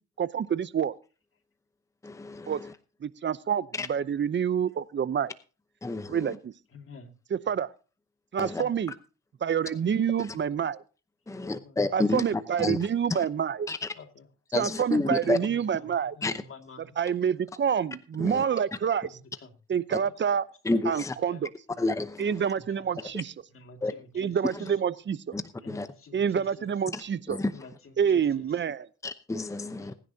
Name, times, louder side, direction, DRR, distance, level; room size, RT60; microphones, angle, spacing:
voice 1, 0.2-0.9 2.5-2.6 3.0-5.3 6.1-6.5 7.3-7.7 8.3-8.9 9.4-10.8 11.9-13.7 14.5-16.2 17.0-19.1 19.7-20.4 20.9-21.5 22.2-23.3 24.1-25.2 26.1-27.4 28.0-28.9, right 8 dB, 40° right, 18 dB, 0.7 m, -27 dB
voice 2, 2.0-2.7 3.8-3.9 5.8-6.4 8.4-8.6 11.3-12.8 13.1-13.2 13.7-13.9 14.5-15.4 16.2-16.3 18.2-18.4 19.9-20.0 20.6-21.2 21.8-22.5 23.8-23.9 24.5-24.6 25.3-25.9 26.9-27.0 27.3-27.5 29.0-29.9, left 2 dB, 10° left, 12 dB, 0.8 m, -30 dB
voice 3, 6.7-7.1 8.6-8.7 9.7-9.8 10.3-10.4 11.3-12.0 13.9-14.3 15.0-17.0 19.0-19.5 19.9-20.1 21.3-21.8 22.5-23.1 23.5-24.8 25.6-26.7 27.5-28.5 29.7-30.0, left 4 dB, 45° left, 5 dB, 2.3 m, -49 dB
20.5 x 10.0 x 2.8 m, 0.35 s
cardioid pair, 90°, 30 cm